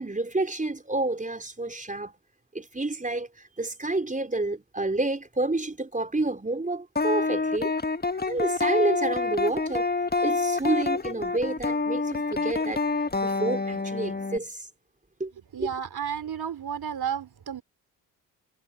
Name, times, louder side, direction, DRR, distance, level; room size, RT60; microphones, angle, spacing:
voice 1, 0.0-2.1 2.5-7.7 8.3-9.9 10.2-12.8 13.2-14.7 15.2-15.3 15.6-15.7, right 2 dB, 15° right, 5.2 m, -29 dB
sound 1, 7.0-14.4, left 3 dB, 20° left, 1.7 m, -27 dB
voice 2, 15.5-17.6, right 8 dB, 50° right, 4.2 m, -32 dB
hypercardioid pair, 45°, 49 cm